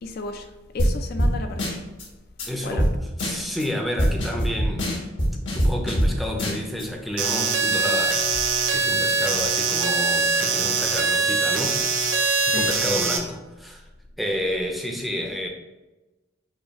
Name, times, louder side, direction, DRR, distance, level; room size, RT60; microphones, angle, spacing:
voice 1, 0.0-1.8 2.6-2.8 12.2-12.7, left 3 dB, 50° left, 0.4 m, -34 dB
sound 1, 0.8-0.9 1.2-1.3 1.6-2.0 2.4-2.5 2.8-2.9 3.2-3.6 4.0-6.1 6.4-6.8, equal, 70° left, 1.3 m, -22 dB
voice 2, 2.4-2.9 3.2-5.0 5.5-12.0 12.5-13.8 14.2-15.5, equal, ahead, 0.5 m, -30 dB
sound 2, 7.2-13.2, right 4 dB, 80° right, 0.8 m, -22 dB
5.5 x 2.4 x 4.1 m
head